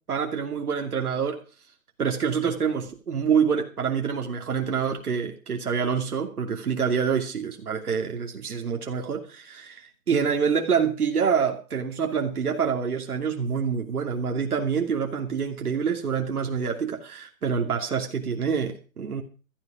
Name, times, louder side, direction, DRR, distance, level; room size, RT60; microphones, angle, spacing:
voice 1, 0.1-1.4 2.0-19.2, right 6 dB, 85° right, 2 dB, 2.8 m, -26 dB
16.0 x 14.0 x 5.0 m, 0.36 s
hypercardioid pair, 160°, 43 cm